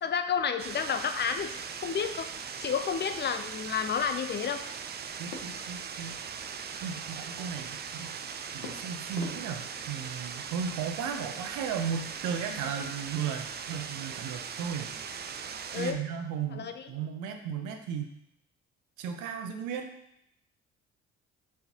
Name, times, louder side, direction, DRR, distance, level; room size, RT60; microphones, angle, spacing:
voice 1, 0.0-2.3 2.6-4.6 15.7-16.0 16.5-16.9, left 7 dB, 35° left, 9 dB, 0.4 m, -31 dB
sound 1, 0.6-15.9, right 6 dB, 35° right, 0.4 m, -40 dB
voice 2, 5.2-6.2 6.8-8.2 8.5-14.9 15.8-18.1 19.0-19.9, right 7 dB, 75° right, 6 dB, 0.6 m, -35 dB
sound 2, 5.3-6.9 8.6-10.7, left 4 dB, 80° left, 0.7 m, -48 dB
4.4 x 3.6 x 2.8 m, 0.79 s
hypercardioid pair, 55°, 31 cm